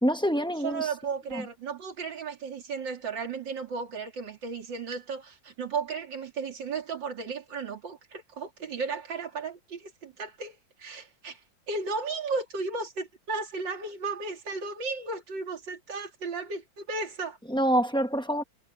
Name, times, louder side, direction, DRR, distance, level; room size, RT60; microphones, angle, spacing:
voice 1, 0.0-0.9 1.3-1.4 17.5-18.4, equal, 5° left, 0.7 m, -26 dB
voice 2, 0.6-11.4 11.7-17.4, right 4 dB, 65° right, 3.4 m, -34 dB
omnidirectional pair, 2.2 m